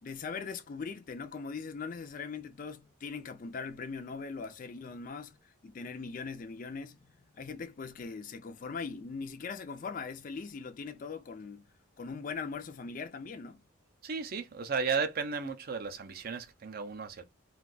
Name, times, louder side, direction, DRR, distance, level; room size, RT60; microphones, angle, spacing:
voice 1, 0.0-7.0 7.3-11.7 12.0-13.6, left 5 dB, 40° left, 0.3 m, -40 dB
voice 2, 14.0-17.2, right 5 dB, 45° right, 0.4 m, -34 dB
2.5 x 2.3 x 3.8 m
head